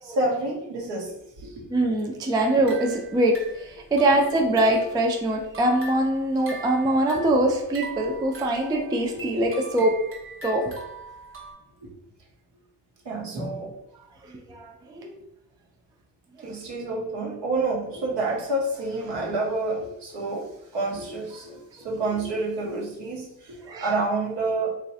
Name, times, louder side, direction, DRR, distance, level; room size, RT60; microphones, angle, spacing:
voice 1, 0.0-1.7 4.4-4.8 7.1-7.4 9.1-9.3 11.8-11.9 13.0-13.8 16.4-24.7, right 2 dB, 60° right, -2 dB, 1.1 m, -29 dB
voice 2, 1.7-9.9 10.4-10.7 14.2-15.2 16.4-16.5 23.7-23.9, right 1 dB, 10° right, 1 dB, 0.3 m, -23 dB
sound 1, 2.4-5.0 5.4-11.5, right 3 dB, 25° right, 0.9 m, -42 dB
3.0 x 2.4 x 2.7 m, 0.86 s
hypercardioid pair, 55°, 48 cm